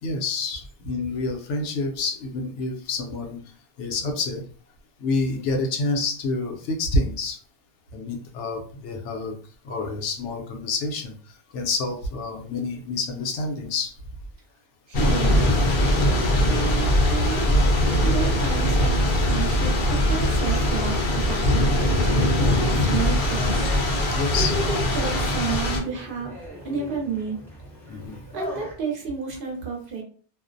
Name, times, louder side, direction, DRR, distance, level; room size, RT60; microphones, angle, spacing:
voice 1, 0.0-3.4 3.8-4.4 5.0-7.4 7.9-9.3 9.6-11.1 11.5-13.9 24.1-24.6 27.9-28.2, left 3 dB, 80° left, 2 dB, 0.9 m, -28 dB
Thunder / Rain, 14.9-25.8, left 1 dB, 55° left, 0.6 m, -21 dB
voice 2, 14.9-15.5 16.4-17.5 18.0-23.7 24.3-26.3 26.6-27.4 28.3-30.0, right 5 dB, 55° right, 1 dB, 0.7 m, -31 dB
sound 1, 18.2-28.7, equal, 5° left, 0.3 m, -40 dB
2.5 x 2.0 x 2.5 m, 0.43 s
omnidirectional pair, 1.2 m